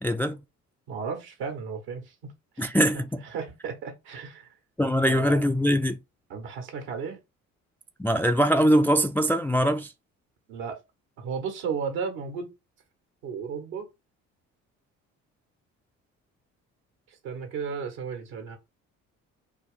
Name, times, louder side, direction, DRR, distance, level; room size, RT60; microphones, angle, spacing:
voice 1, 0.0-0.4 2.6-3.2 4.8-6.0 8.0-9.9, equal, 5° left, 0.4 m, -22 dB
voice 2, 0.9-2.8 3.2-4.5 5.0-5.5 6.3-7.2 10.5-10.8 11.2-12.5 13.2-13.9 17.1-18.6, right 6 dB, 70° right, 1.5 m, -34 dB
4.7 x 2.6 x 3.6 m
hypercardioid pair, 50°, 39 cm